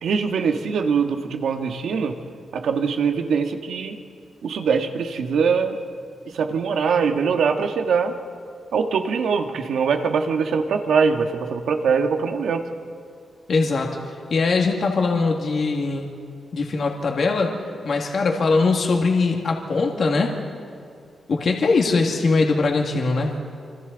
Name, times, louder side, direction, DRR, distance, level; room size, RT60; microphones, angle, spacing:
voice 1, 0.0-2.2 2.5-4.0 4.4-5.8 6.3-8.1 8.7-12.7, right 5 dB, 85° right, 5 dB, 1.6 m, -22 dB
voice 2, 13.5-16.1 16.5-17.5 17.8-20.3 21.3-23.3, left 3 dB, 55° left, 1 dB, 2.1 m, -21 dB
27.0 x 26.5 x 4.0 m, 2.3 s
wide cardioid pair, 135°, 0 cm